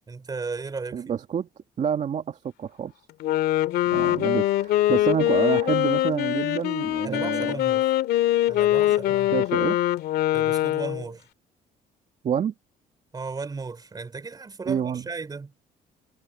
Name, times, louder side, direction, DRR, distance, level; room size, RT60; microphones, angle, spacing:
voice 1, 0.1-1.0 7.0-7.9 8.5-9.4 10.3-11.3 13.1-15.5, right 4 dB, 25° right, 3.2 m, -35 dB
voice 2, 0.9-1.5 1.8-2.9 3.9-7.6 9.3-9.8 12.2-12.5 14.7-15.1, right 8 dB, 45° right, 2.0 m, -28 dB
Wind instrument woodwind instrument, 3.1-11.1, left 14 dB, 75° left, 2.0 m, -23 dB
cardioid pair, 110°, 17 cm